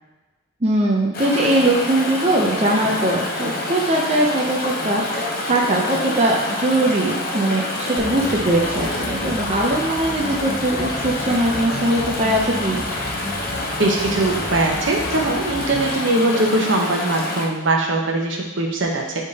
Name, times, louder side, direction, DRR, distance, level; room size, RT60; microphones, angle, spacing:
voice 1, 0.6-12.8, right 1 dB, 35° right, -2 dB, 0.6 m, -21 dB
Chatter / Stream, 1.1-17.5, left 2 dB, 45° left, 0.8 m, -27 dB
sound 1, 8.0-16.0, left 1 dB, 15° left, 0.7 m, -34 dB
voice 2, 13.8-19.2, right 2 dB, 70° right, 1 dB, 0.9 m, -21 dB
9.4 x 3.6 x 2.8 m, 1.1 s
head